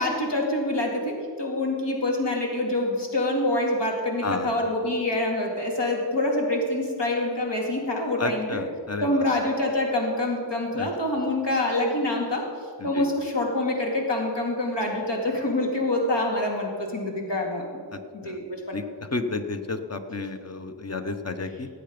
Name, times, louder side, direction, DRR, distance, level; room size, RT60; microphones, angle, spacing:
voice 1, 0.0-8.6 9.0-12.5 12.8-17.8 18.2-18.8, left 1 dB, 70° left, -1 dB, 2.3 m, -26 dB
voice 2, 4.2-4.5 8.2-9.3 10.7-10.9 12.8-13.1 17.9-18.4 18.7-18.8 19.1-21.7, left 3 dB, 35° left, 7 dB, 1.0 m, -31 dB
18.0 x 8.1 x 5.2 m, 2.2 s
wide cardioid pair, 80°, 44 cm